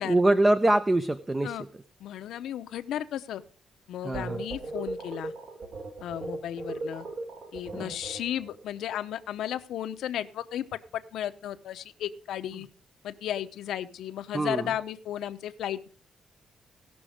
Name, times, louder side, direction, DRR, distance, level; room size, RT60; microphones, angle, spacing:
voice 1, 0.1-1.6 4.0-4.4 7.7-7.9 14.3-14.7, right 1 dB, 15° right, 11 dB, 0.5 m, -24 dB
voice 2, 2.0-3.4 3.9-5.3 6.0-7.1 7.5-12.7 13.0-15.9, left 11 dB, 90° left, 10 dB, 0.7 m, -34 dB
sound 1, 4.1-8.6, right 3 dB, 60° right, 2.9 m, -37 dB
18.0 x 6.2 x 5.0 m, 0.41 s
cardioid pair, 130°, 0 cm